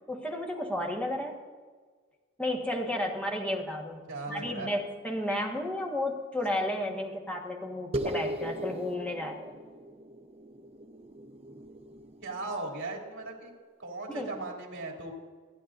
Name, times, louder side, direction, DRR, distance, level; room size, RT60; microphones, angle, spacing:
voice 1, 0.1-1.4 2.4-9.5 14.1-14.3, left 1 dB, 5° left, 0 dB, 1.5 m, -32 dB
voice 2, 4.1-4.7 12.2-13.5 13.8-15.1, right 2 dB, 60° right, -1 dB, 3.0 m, -37 dB
sound 1, 7.9-12.7, right 1 dB, 30° right, 0.9 m, -38 dB
29.0 x 10.0 x 2.6 m, 1.5 s
head